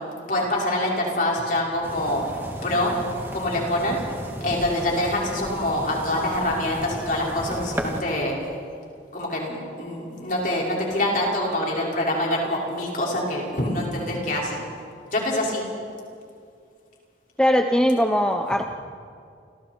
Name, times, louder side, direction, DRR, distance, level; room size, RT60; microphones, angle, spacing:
voice 1, 0.3-2.2 2.6-2.9 3.3-4.0 4.4-8.4 9.1-14.6 15.1-15.6, left 1 dB, 45° left, -3 dB, 5.7 m, -25 dB
sound 1, 1.8-8.0, equal, 10° right, 2.2 m, -35 dB
voice 2, 17.4-18.6, equal, 5° left, 4 dB, 0.7 m, -20 dB
30.0 x 28.5 x 4.6 m, 2.3 s
head